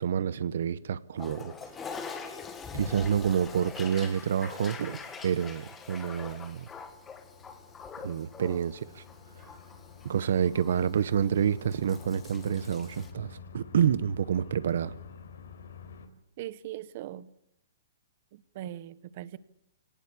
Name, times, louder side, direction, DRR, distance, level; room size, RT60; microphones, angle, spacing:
voice 1, 0.0-1.9 2.7-6.7 8.0-9.0 9.3-9.5 10.0-14.9, right 8 dB, 60° right, 0.8 m, -28 dB
Toilet flush, 1.1-13.1, left 5 dB, 10° left, 1.5 m, -44 dB
sound 1, 6.5-16.1, left 6 dB, 70° left, 3.8 m, -49 dB
voice 2, 16.4-17.3 18.3-19.4, right 13 dB, 35° right, 1.0 m, -40 dB
24.5 x 18.5 x 8.4 m
hypercardioid pair, 175°, 0 cm